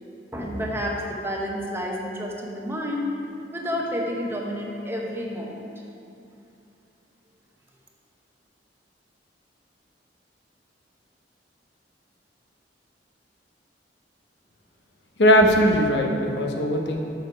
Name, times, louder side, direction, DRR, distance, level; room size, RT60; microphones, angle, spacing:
voice 1, 0.3-3.1 3.5-5.7, equal, 15° right, -1 dB, 0.8 m, -30 dB
voice 2, 15.2-17.0, equal, 75° left, 2 dB, 0.8 m, -19 dB
6.8 x 6.4 x 4.5 m, 2.7 s
head